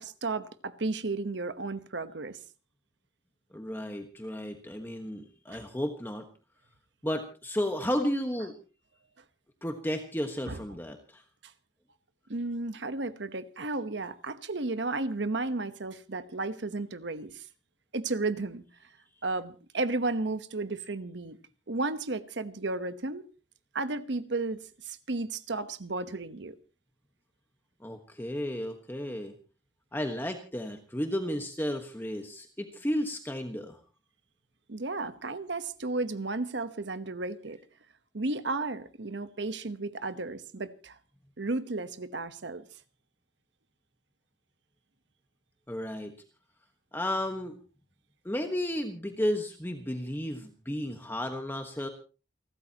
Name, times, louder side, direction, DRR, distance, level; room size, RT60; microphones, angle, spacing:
voice 1, 0.0-2.4 5.5-5.6 10.5-10.6 12.3-17.5 17.9-18.6 19.2-21.4 21.7-23.3 23.7-26.6 34.7-37.6 38.1-41.0 41.4-42.7, right 3 dB, 75° right, 1.1 m, -33 dB
voice 2, 3.5-6.3 7.0-8.5 9.6-11.2 27.8-29.3 29.9-33.8 45.7-46.1 46.9-47.5 48.2-51.9, equal, 10° left, 1.3 m, -33 dB
29.0 x 13.5 x 3.0 m
head